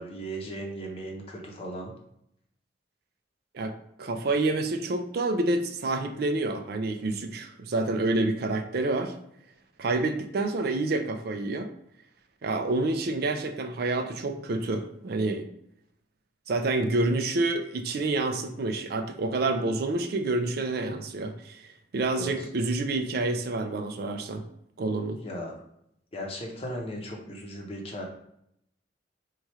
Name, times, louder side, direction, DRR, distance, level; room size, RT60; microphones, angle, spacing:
voice 1, 0.0-1.9 22.1-22.3 25.2-25.5 26.1-28.0, equal, 30° left, 0 dB, 0.7 m, -37 dB
voice 2, 4.0-9.2 9.8-11.7 12.4-15.5 16.5-21.6 21.9-24.4 24.8-25.2, right 2 dB, 55° right, 7 dB, 0.4 m, -28 dB
3.1 x 2.3 x 4.2 m, 0.74 s
head